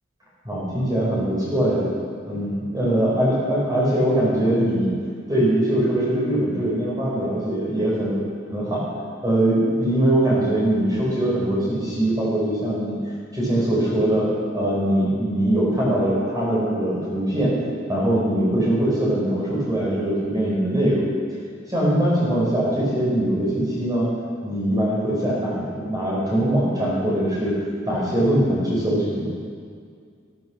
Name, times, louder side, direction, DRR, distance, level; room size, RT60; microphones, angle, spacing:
voice 1, 0.4-1.8 2.3-4.9 5.3-8.2 8.5-8.9 9.2-12.9 13.3-17.5 17.9-21.1 21.7-24.1 24.4-27.6 27.9-29.2, right 1 dB, 20° right, -6 dB, 5.0 m, -22 dB
15.0 x 13.5 x 6.4 m, 2.1 s
head